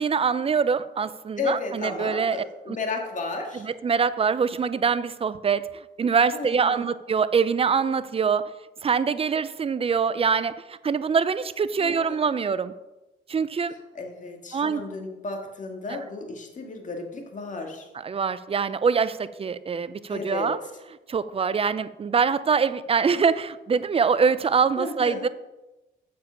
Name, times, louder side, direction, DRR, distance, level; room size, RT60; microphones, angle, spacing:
voice 1, 0.0-2.8 3.6-8.5 8.8-12.7 13.3-13.7 14.5-14.8 15.9-16.0 18.0-20.6 21.1-25.3, right 6 dB, 30° right, 15 dB, 0.5 m, -24 dB
voice 2, 1.4-3.7 6.3-6.9 11.8-12.2 13.9-17.9 20.1-20.5 24.8-25.3, left 3 dB, 40° left, 2 dB, 2.0 m, -33 dB
7.5 x 7.2 x 5.7 m, 1.0 s
cardioid pair, 90°, 20 cm